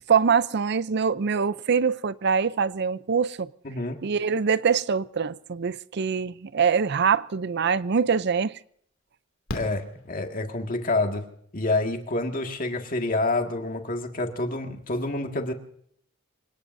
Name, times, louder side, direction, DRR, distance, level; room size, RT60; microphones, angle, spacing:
voice 1, 0.1-3.5 4.0-8.6, right 6 dB, 55° right, 0.5 m, -24 dB
voice 2, 3.6-4.0 9.5-11.2 11.5-15.5, left 2 dB, 45° left, 1.9 m, -28 dB
Fireworks, 7.8-7.9 9.5-10.8 12.6-12.7 12.9-13.0, left 1 dB, 85° left, 2.6 m, -38 dB
27.0 x 18.5 x 2.7 m
head